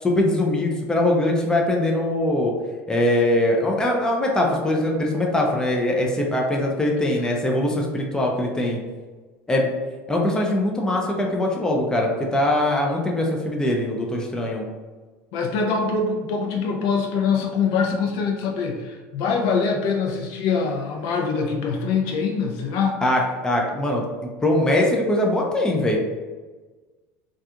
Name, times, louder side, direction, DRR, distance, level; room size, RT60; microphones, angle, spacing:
voice 1, 0.0-2.5 2.9-8.8 9.5-9.7 10.1-14.6 23.0-24.0 24.4-26.0, left 1 dB, 10° left, -1 dB, 0.5 m, -22 dB
voice 2, 15.3-23.0, left 5 dB, 65° left, 1 dB, 0.5 m, -24 dB
2.4 x 2.3 x 2.7 m, 1.3 s
supercardioid pair, 100°, 8 cm